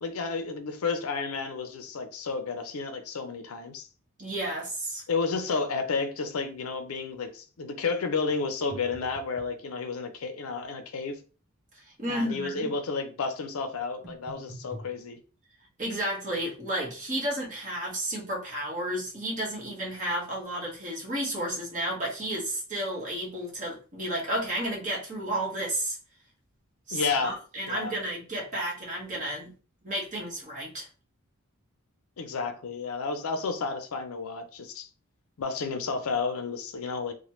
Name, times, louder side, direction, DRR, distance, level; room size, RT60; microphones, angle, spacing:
voice 1, 0.0-3.9 5.1-11.2 12.1-15.2 26.9-27.4 27.7-27.9 32.2-34.9 35.4-37.1, left 4 dB, 75° left, 0.5 m, -31 dB
voice 2, 4.2-5.0 11.7-12.7 15.8-26.0 26.9-29.5 29.8-30.9, right 1 dB, 35° right, 1.2 m, -32 dB
sound 1, 8.7-9.6 14.0-14.9, right 1 dB, ahead, 0.6 m, -45 dB
3.1 x 2.2 x 3.0 m
head